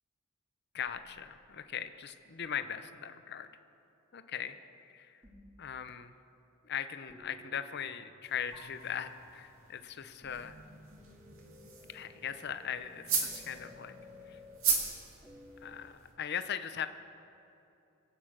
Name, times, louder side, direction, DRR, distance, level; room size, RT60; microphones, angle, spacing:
voice 1, 0.7-3.5 4.1-4.5 4.9-5.2 5.6-6.1 6.6-10.6 11.9-14.0 14.3-14.4 15.6-16.9, left 8 dB, 50° left, 10 dB, 0.7 m, -39 dB
sound 1, 0.8-1.7 2.4-3.5 5.2-5.8 7.1-8.2 8.5-15.9, left 1 dB, 10° right, 1.7 m, -56 dB
sound 2, 8.3-16.1, right 6 dB, 70° right, 2.3 m, -38 dB
24.5 x 8.7 x 6.1 m, 2.8 s
head